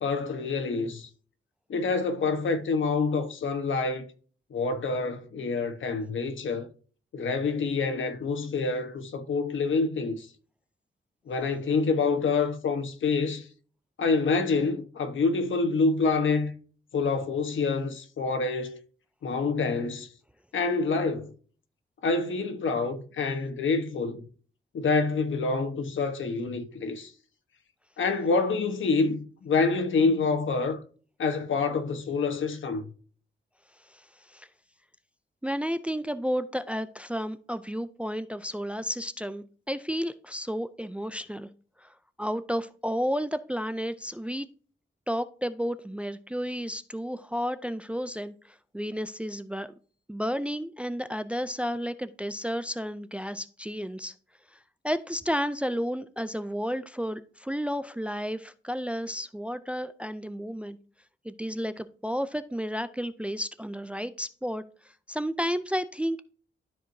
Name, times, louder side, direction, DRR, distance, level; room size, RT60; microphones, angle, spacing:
voice 1, 0.0-1.1 1.7-4.1 4.5-6.7 7.1-10.3 11.3-13.5 14.0-16.5 16.9-18.8 19.2-20.1 20.5-21.3 22.0-24.3 24.7-27.1 28.0-30.8 31.2-32.9, left 4 dB, 80° left, 1.2 m, -27 dB
voice 2, 33.8-34.5 35.4-41.5 41.8-44.5 45.1-49.7 50.1-54.1 54.5-54.6 54.8-60.8 61.2-66.2, equal, 5° right, 0.4 m, -32 dB
12.5 x 4.6 x 2.7 m
wide cardioid pair, 175°, 20 cm